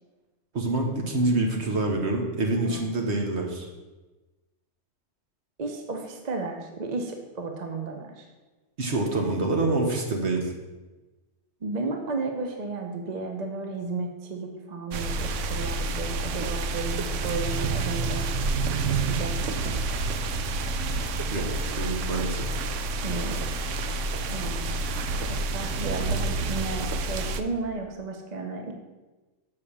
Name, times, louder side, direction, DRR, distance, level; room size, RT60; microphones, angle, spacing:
voice 1, 0.5-3.7 8.8-10.5 21.3-22.5, right 2 dB, 60° right, 1 dB, 1.6 m, -26 dB
voice 2, 5.6-8.3 11.6-18.3 18.8-19.4 23.0-23.4 24.3-24.6 25.3-28.7, right 3 dB, 40° right, 4 dB, 0.8 m, -33 dB
sound 1, 14.9-27.4, right 3 dB, 80° right, 1.0 m, -28 dB
6.9 x 4.9 x 7.1 m, 1.2 s
omnidirectional pair, 1.3 m